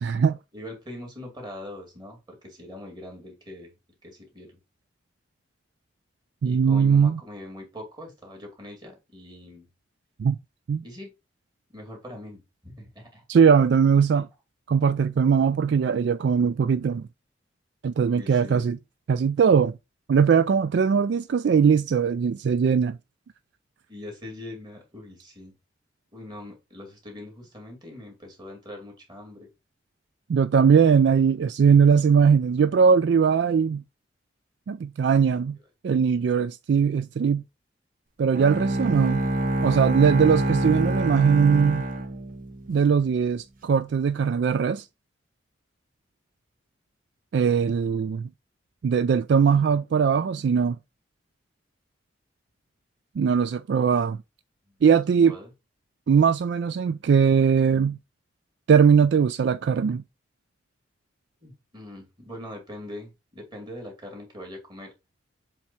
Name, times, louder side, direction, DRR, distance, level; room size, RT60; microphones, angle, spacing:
voice 1, 0.0-0.4 6.4-7.2 10.2-10.4 10.7-10.8 13.3-14.3 14.7-17.1 17.8-18.8 19.1-19.8 20.1-23.0 30.3-33.8 34.7-35.6 35.8-37.4 38.2-39.2 39.6-41.8 42.7-44.9 47.3-48.3 48.8-50.8 53.2-54.2 54.8-55.3 56.1-58.0 58.7-60.0, right 6 dB, 60° right, 0.3 m, -20 dB
voice 2, 0.5-3.7 4.0-4.6 6.4-9.7 10.8-11.1 11.7-13.2 14.1-14.3 18.1-18.7 23.9-25.5 26.1-29.5 54.7-54.8 55.2-55.5 61.4-64.9, left 1 dB, 25° right, 2.6 m, -42 dB
Bowed string instrument, 38.3-42.8, right 1 dB, 45° right, 1.1 m, -26 dB
7.4 x 3.5 x 4.2 m
head